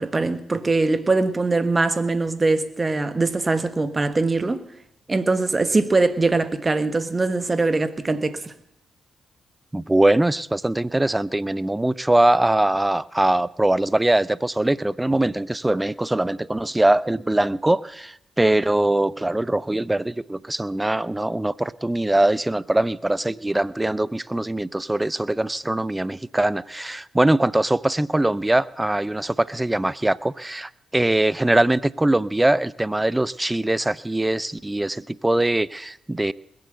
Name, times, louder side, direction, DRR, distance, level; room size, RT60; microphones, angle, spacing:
voice 1, 0.0-4.6 5.1-8.5, right 3 dB, 30° right, 1.6 m, -22 dB
voice 2, 9.7-36.3, right 1 dB, 15° right, 0.5 m, -22 dB
21.0 x 7.8 x 8.0 m
supercardioid pair, 50°, 0 cm